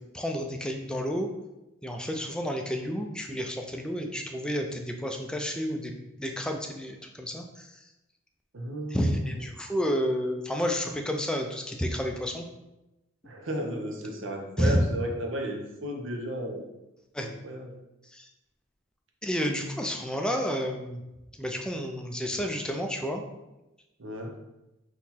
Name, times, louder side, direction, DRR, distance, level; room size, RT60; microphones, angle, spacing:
voice 1, 0.1-1.3 1.8-5.9 6.2-7.8 8.9-12.5 14.6-14.8 17.1-17.3 18.0-18.3 19.2-21.0 21.4-23.2, equal, 5° left, 2 dB, 0.4 m, -30 dB
voice 2, 8.5-9.4 13.2-16.6 17.2-17.7 24.0-24.3, right 1 dB, 70° right, 1 dB, 0.8 m, -34 dB
3.9 x 3.0 x 4.2 m, 0.97 s
head